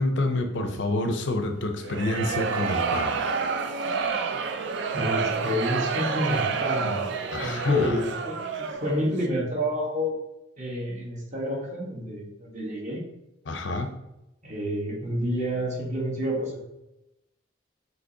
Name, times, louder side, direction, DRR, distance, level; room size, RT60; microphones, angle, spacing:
voice 1, 0.0-3.2 7.3-8.0 13.5-13.9, left 2 dB, 60° left, 6 dB, 0.5 m, -27 dB
voice 2, 0.5-1.0 4.9-7.1 7.4-8.4 8.8-10.2 10.6-13.0 14.4-16.6, equal, 35° right, -2 dB, 1.1 m, -29 dB
sound 1, 1.8-9.0, right 5 dB, 60° right, 0.4 m, -29 dB
6.2 x 2.8 x 2.7 m, 0.93 s
head